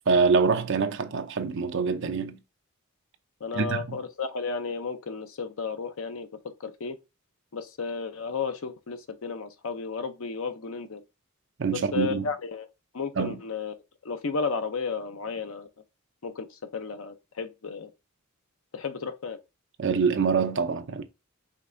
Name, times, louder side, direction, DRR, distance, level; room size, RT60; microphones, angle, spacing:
voice 1, 0.1-2.4 3.5-4.0 11.6-12.3 13.2-13.4 19.8-21.0, right 5 dB, 55° right, 0.5 m, -25 dB
voice 2, 3.4-6.3 6.6-7.0 7.5-11.0 11.7-12.7 12.9-13.7 14.0-15.7 16.2-17.9 18.7-19.4, left 4 dB, 65° left, 0.6 m, -33 dB
5.2 x 3.3 x 2.6 m
head